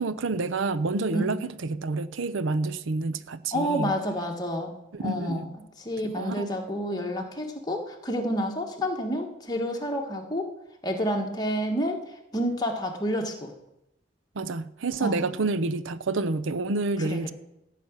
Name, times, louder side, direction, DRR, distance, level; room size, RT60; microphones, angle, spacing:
voice 1, 0.0-3.9 4.9-5.5 6.0-6.5 14.3-17.3, right 3 dB, 75° right, 14 dB, 0.6 m, -29 dB
voice 2, 3.5-4.7 5.0-5.5 5.8-10.5 10.8-13.5 15.0-15.4 17.0-17.3, equal, 20° left, 2 dB, 1.5 m, -29 dB
15.0 x 6.0 x 8.9 m, 0.86 s
head